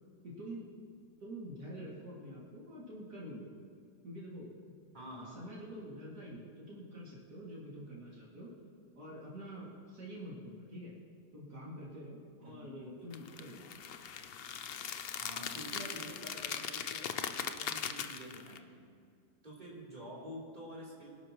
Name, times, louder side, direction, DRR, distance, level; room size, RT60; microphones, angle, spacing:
voice 1, 0.2-0.7 1.2-3.5 4.0-4.6 4.9-8.5 8.9-10.9 11.3-13.7, equal, 65° right, -6 dB, 3.0 m, -47 dB
voice 2, 4.9-5.4 12.4-12.7 15.2-18.8 19.4-21.1, right 1 dB, 25° right, -5 dB, 3.7 m, -48 dB
sound 1, 13.1-18.6, left 8 dB, 85° left, 0.5 m, -40 dB
24.0 x 12.0 x 3.1 m, 2.3 s
omnidirectional pair, 1.8 m